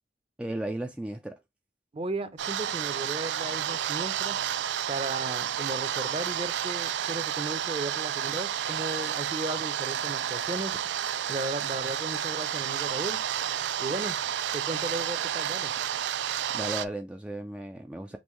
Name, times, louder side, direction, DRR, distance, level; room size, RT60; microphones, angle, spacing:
voice 1, 0.4-1.4 16.5-18.2, right 1 dB, 5° right, 0.3 m, -35 dB
voice 2, 1.9-4.4 4.9-10.8 11.3-13.2 13.8-14.2 14.5-15.7, right 2 dB, 35° right, 0.7 m, -35 dB
sound 1, 2.4-16.8, right 10 dB, 80° right, 0.4 m, -31 dB
5.3 x 3.1 x 3.1 m
head